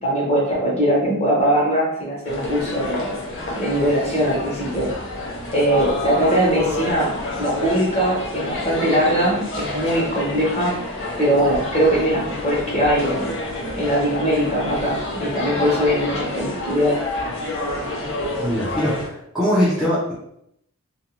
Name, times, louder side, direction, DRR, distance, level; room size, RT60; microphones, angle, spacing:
voice 1, 0.0-3.1 3.5-4.9 5.5-7.1 7.4-10.7 11.2-13.3 13.8-17.0, equal, 30° left, -5 dB, 0.9 m, -21 dB
sound 1, 2.2-19.1, left 1 dB, 55° left, 0.7 m, -29 dB
voice 2, 18.4-20.1, equal, ahead, -10 dB, 0.5 m, -21 dB
2.5 x 2.1 x 2.9 m, 0.75 s
head